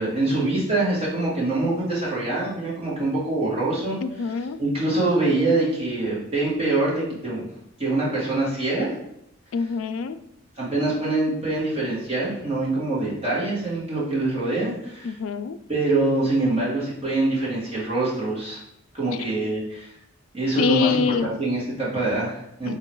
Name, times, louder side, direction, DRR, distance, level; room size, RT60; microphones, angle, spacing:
voice 1, 0.0-4.0 4.3-7.4 7.8-8.9 10.6-15.1 15.7-18.6 18.9-19.9 20.3-22.8, right 2 dB, 30° right, -8 dB, 1.8 m, -24 dB
voice 2, 4.0-4.6 9.5-10.2 15.0-15.6 20.6-21.3 22.7-22.8, left 5 dB, 70° left, 10 dB, 0.3 m, -25 dB
3.9 x 2.9 x 4.5 m, 0.78 s
head